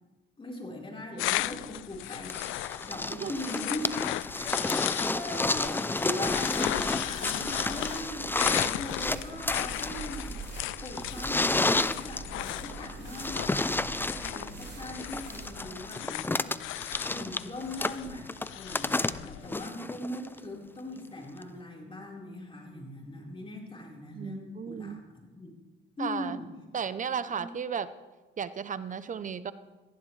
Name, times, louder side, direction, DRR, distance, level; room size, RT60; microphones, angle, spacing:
voice 1, 0.4-3.9 4.4-10.4 10.8-16.8 17.1-25.5 26.0-26.5 27.3-27.4, left 1 dB, 25° left, -2 dB, 4.4 m, -40 dB
sound 1, 1.2-19.7, left 16 dB, 90° left, 0.4 m, -36 dB
sound 2, 2.3-20.4 21.4-21.5, left 2 dB, 10° left, 0.5 m, -31 dB
sound 3, 6.2-15.8, right 4 dB, 60° right, 4.1 m, -45 dB
voice 2, 24.1-25.0 26.0-26.4 26.7-27.9 28.4-29.5, right 7 dB, 40° right, 14 dB, 0.7 m, -34 dB
18.5 x 15.0 x 3.3 m, 1.2 s
cardioid pair, 90°, 20 cm